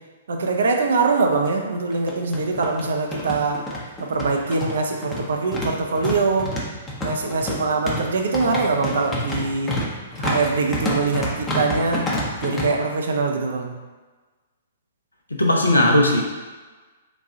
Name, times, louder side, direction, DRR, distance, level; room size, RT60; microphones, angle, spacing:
voice 1, 0.3-3.6 4.0-6.5 7.0-9.7 10.2-12.1 12.4-13.7, right 4 dB, 60° right, 2 dB, 0.5 m, -23 dB
sound 1, 0.6-0.7 1.0-1.1 1.9-12.7, left 1 dB, 15° left, 0.7 m, -28 dB
voice 2, 15.3-16.2, left 1 dB, 75° left, 0 dB, 0.6 m, -17 dB
3.9 x 2.4 x 3.7 m, 1.3 s
figure-of-eight pair, 115°, 0 cm